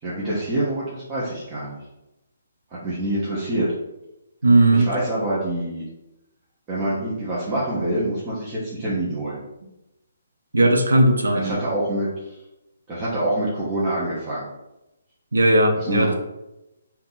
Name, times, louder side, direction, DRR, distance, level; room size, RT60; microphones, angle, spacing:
voice 1, 0.0-1.8 2.7-3.7 4.7-5.9 6.7-9.4 11.3-12.4 12.9-14.5 15.8-16.1, right 1 dB, 25° right, -8 dB, 1.0 m, -26 dB
voice 2, 4.4-4.9 10.5-11.6 15.3-16.1, right 1 dB, 80° right, 4 dB, 0.6 m, -17 dB
3.4 x 2.9 x 4.0 m, 0.94 s
figure-of-eight pair, 140°, 0 cm